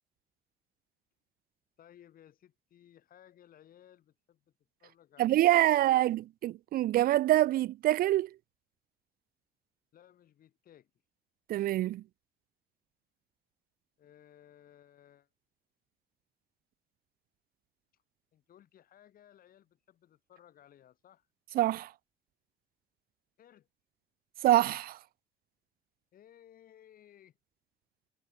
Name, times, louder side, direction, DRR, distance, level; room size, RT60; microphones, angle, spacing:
voice 1, 1.8-4.5 4.8-6.0 9.9-10.9 14.0-15.3 18.3-21.3 23.4-23.7 26.1-27.4, left 11 dB, 60° left, 7.4 m, -59 dB
voice 2, 5.2-8.3 11.5-12.0 21.5-21.9 24.4-25.0, right 14 dB, 60° right, 0.5 m, -25 dB
cardioid pair, 110°, 17 cm